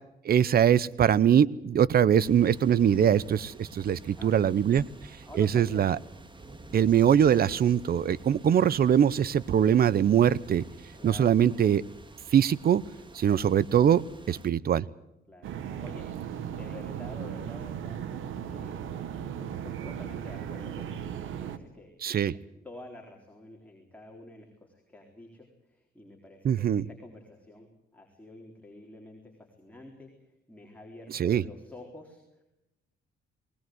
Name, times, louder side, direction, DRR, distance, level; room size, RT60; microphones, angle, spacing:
voice 1, 0.2-4.8 5.4-6.0 6.7-10.6 11.0-11.8 12.3-12.8 13.1-14.0 14.3-14.9 22.0-22.3 26.4-26.8 31.1-31.4, right 9 dB, 50° right, 22 dB, 0.7 m, -22 dB
sound 1, 2.2-14.5, right 2 dB, 25° right, 1.9 m, -49 dB
voice 2, 5.3-5.9 11.0-11.4 15.3-15.5 15.8-16.1 16.5-18.0 18.4-18.8 19.2-27.7 27.9-29.3 29.6-32.4, left 1 dB, 5° left, -1 dB, 4.0 m, -49 dB
sound 2, 15.4-21.6, right 9 dB, 80° right, 1.5 m, -37 dB
20.0 x 19.5 x 7.8 m, 0.88 s
cardioid pair, 90°, 20 cm